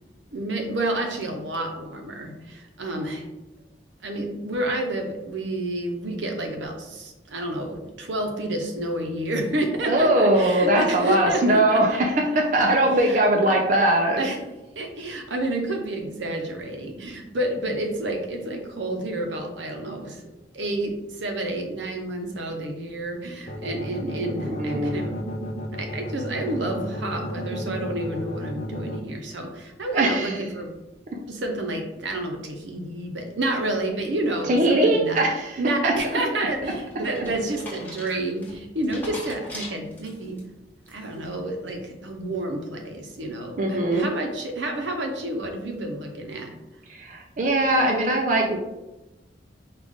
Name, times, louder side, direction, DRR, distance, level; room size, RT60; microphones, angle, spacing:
voice 1, 0.3-3.3 4.0-12.0 12.5-12.6 13.1-13.2 14.2-14.4 14.8-20.2 20.5-25.2 25.8-30.7 31.3-35.1 35.6-40.4 40.9-46.5, right 1 dB, 75° right, 3 dB, 0.7 m, -29 dB
voice 2, 9.8-14.3 24.3-25.0 29.9-30.5 34.5-36.2 43.6-44.1 46.9-48.6, right 1 dB, 45° right, 0 dB, 0.4 m, -21 dB
sound 1, 23.5-29.0, equal, 35° left, 0.5 m, -33 dB
sound 2, 36.2-40.4 40.8-41.3, left 1 dB, 10° left, 1.0 m, -41 dB
4.9 x 2.4 x 3.6 m, 1.0 s
head